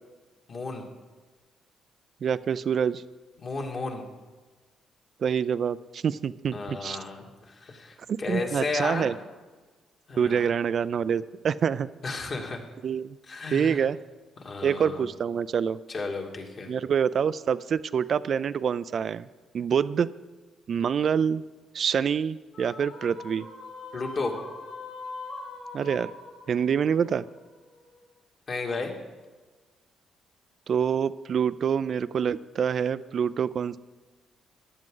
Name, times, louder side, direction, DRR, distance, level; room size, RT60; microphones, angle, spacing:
voice 1, 0.5-0.9 3.4-4.1 6.5-9.1 10.1-10.5 12.0-12.6 13.3-13.8 14.4-15.0 15.9-16.7 23.9-24.3 28.5-28.9, left 3 dB, 45° left, 1 dB, 2.2 m, -33 dB
voice 2, 2.2-3.0 5.2-7.0 8.1-9.1 10.2-11.9 12.8-13.2 13.5-14.0 14.6-15.8 16.7-19.3 19.5-20.1 20.7-21.4 21.7-23.5 25.7-26.1 26.5-27.2 30.7-33.8, right 7 dB, 55° right, 15 dB, 0.3 m, -26 dB
sound 1, 22.5-28.0, left 3 dB, 80° left, 4.5 m, -42 dB
15.0 x 11.0 x 3.9 m, 1.3 s
cardioid pair, 90°, 0 cm